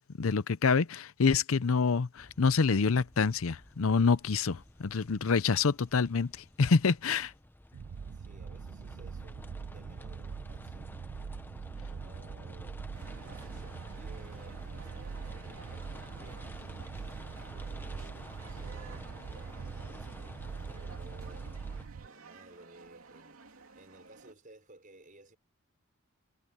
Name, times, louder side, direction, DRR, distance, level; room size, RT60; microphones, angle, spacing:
voice 1, 0.2-6.3 6.6-7.3, left 5 dB, 70° left, 0.6 m, -26 dB
sound 1, 2.2-21.9, left 1 dB, 10° left, 1.0 m, -52 dB
sound 2, 7.7-22.1, right 5 dB, 90° right, 0.5 m, -43 dB
voice 2, 7.8-11.3 11.9-12.8 13.2-16.8 17.4-21.6 22.0-25.4, right 1 dB, 40° right, 6.0 m, -57 dB
sound 3, 12.9-24.3, right 4 dB, 75° right, 2.9 m, -54 dB
head